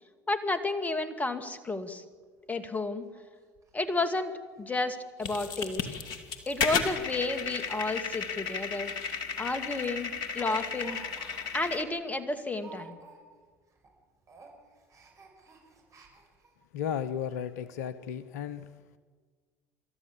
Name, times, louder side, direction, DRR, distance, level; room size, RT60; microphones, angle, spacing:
voice 1, 0.3-2.0 2.5-3.1 3.7-5.9 6.5-8.9 9.4-10.1 10.4-11.0 11.5-13.0, left 2 dB, 15° left, 8 dB, 2.3 m, -31 dB
Speech, 2.2-2.3 2.7-2.8 3.1-3.2 3.6-3.7 4.2-4.3 4.6-4.8 5.1-5.2 6.0-6.2 7.0-9.1 9.4-9.5 9.9-13.5 13.7-13.9 14.2-16.5 17.1-17.2 17.5-17.6, right 3 dB, 35° right, 5.8 m, -53 dB
sound 1, 5.2-11.8, left 6 dB, 55° left, 2.4 m, -34 dB
voice 2, 16.7-18.7, left 8 dB, 70° left, 15 dB, 0.8 m, -34 dB
28.0 x 13.5 x 7.4 m, 1.5 s
hypercardioid pair, 70°, 9 cm